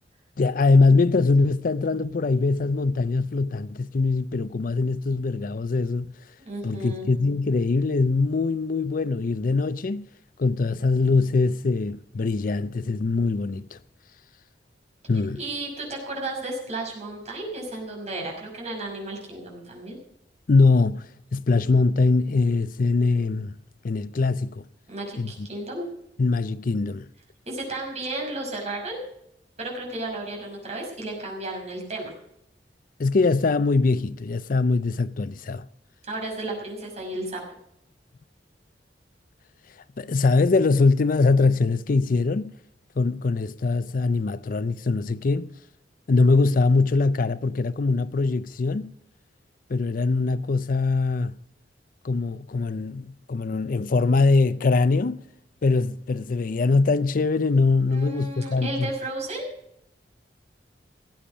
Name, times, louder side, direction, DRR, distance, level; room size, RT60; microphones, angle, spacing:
voice 1, 0.4-6.1 6.6-10.1 10.4-13.8 15.1-15.4 20.5-23.5 23.8-24.6 25.2-25.5 26.2-27.1 33.0-35.6 40.0-42.5 43.0-45.5 46.1-48.9 49.7-51.3 52.0-55.2 55.6-58.9, left 3 dB, 50° left, 0.5 m, -22 dB
voice 2, 6.4-7.1 15.4-20.0 24.9-25.9 27.5-29.0 29.6-32.1 36.0-37.4 57.9-59.5, right 2 dB, 40° right, 5.7 m, -33 dB
18.0 x 8.6 x 6.2 m
head